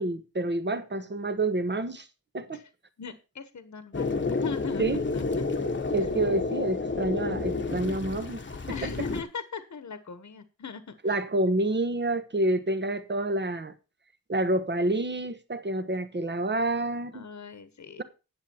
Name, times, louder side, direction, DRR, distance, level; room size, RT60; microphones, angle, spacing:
voice 1, 0.0-2.1 2.3-2.6 4.8-5.0 5.9-8.4 8.8-8.9 11.0-13.7 14.3-17.2, right 2 dB, 30° right, 1.2 m, -28 dB
voice 2, 3.0-4.1 4.4-4.8 5.1-5.4 8.7-11.2 17.1-18.0, left 5 dB, 50° left, 1.2 m, -39 dB
sound 1, 3.9-9.2, left 3 dB, 35° left, 1.2 m, -30 dB
10.5 x 8.1 x 4.5 m
wide cardioid pair, 155°, 35 cm